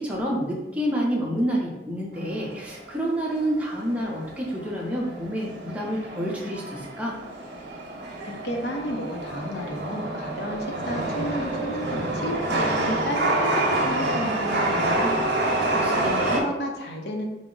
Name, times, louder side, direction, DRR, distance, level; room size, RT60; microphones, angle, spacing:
voice 1, 0.0-7.2 15.4-16.4, equal, 10° right, -3 dB, 0.7 m, -28 dB
Chatter / Subway metro underground, 2.2-16.4, right 2 dB, 75° right, 0.7 m, -27 dB
voice 2, 8.2-17.2, equal, 70° left, 1 dB, 0.6 m, -32 dB
4.7 x 2.0 x 3.7 m, 1.0 s
head